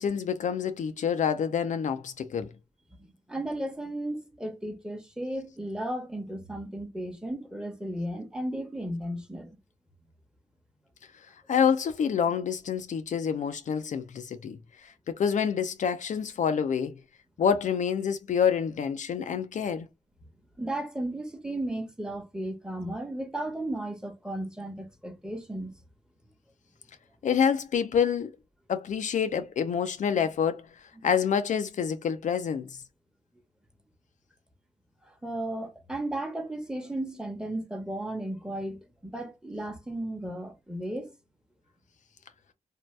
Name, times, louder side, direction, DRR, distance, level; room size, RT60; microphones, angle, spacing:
voice 1, 0.0-2.5 11.5-16.9 17.4-19.9 27.2-28.3 28.7-30.7 31.0-32.8, left 7 dB, 65° left, 0.4 m, -27 dB
voice 2, 3.0-9.5 20.6-25.7 35.1-41.1, right 1 dB, 5° right, 0.9 m, -35 dB
2.7 x 2.2 x 3.1 m
cardioid pair, 60°, 14 cm